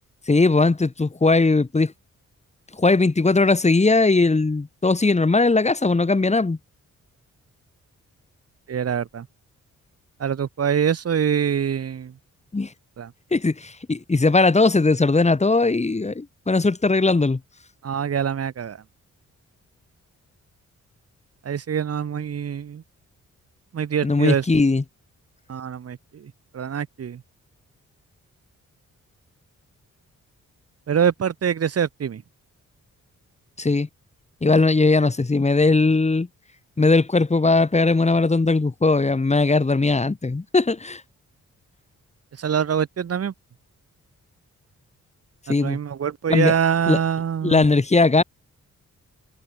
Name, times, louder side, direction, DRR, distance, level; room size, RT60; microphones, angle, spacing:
voice 1, 0.3-1.9 2.8-6.6 12.5-12.7 13.3-17.4 24.0-24.8 33.6-33.9 34.4-36.3 36.8-41.0 45.5-45.8 46.3-46.5 46.9-47.0 47.4-48.2, left 3 dB, 20° left, 1.6 m, -19 dB
voice 2, 8.7-9.3 10.2-12.1 13.0-13.1 17.8-18.8 21.4-22.8 23.7-24.4 25.5-27.2 30.9-32.2 42.4-43.3 45.5-47.6, right 8 dB, 50° right, 1.2 m, -24 dB
cardioid pair, 80°, 31 cm